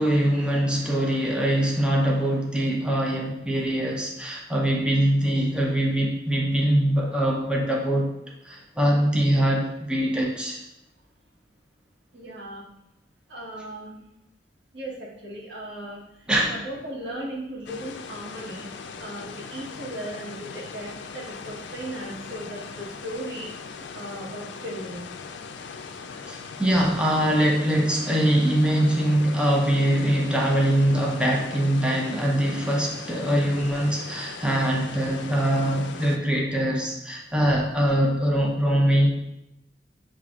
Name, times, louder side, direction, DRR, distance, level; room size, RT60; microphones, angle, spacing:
voice 1, 0.0-8.1 8.4-10.6 16.3-16.6 26.3-39.1, right 1 dB, 5° right, -1 dB, 0.5 m, -23 dB
voice 2, 12.1-12.7 13.3-14.0 14.7-16.0 16.5-18.7 19.0-25.1, right 1 dB, 85° right, -3 dB, 1.2 m, -37 dB
sound 1, 17.7-36.2, left 5 dB, 75° left, 0.4 m, -40 dB
7.0 x 2.5 x 2.4 m, 0.86 s
head